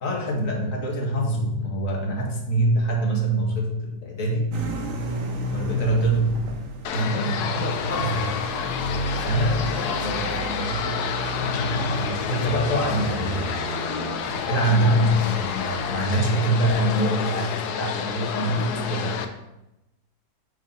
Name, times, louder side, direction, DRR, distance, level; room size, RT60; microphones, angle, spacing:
voice 1, 0.0-4.6 5.5-6.5 6.9-8.3 9.2-11.0 11.4-13.5 14.2-19.2, right 1 dB, 60° left, 0 dB, 1.7 m, -25 dB
sound 1, 4.5-16.0, right 1 dB, 60° right, 1.2 m, -32 dB
sound 2, 6.8-19.2, left 7 dB, 90° left, 1.2 m, -29 dB
8.0 x 4.1 x 4.2 m, 0.92 s
omnidirectional pair, 1.6 m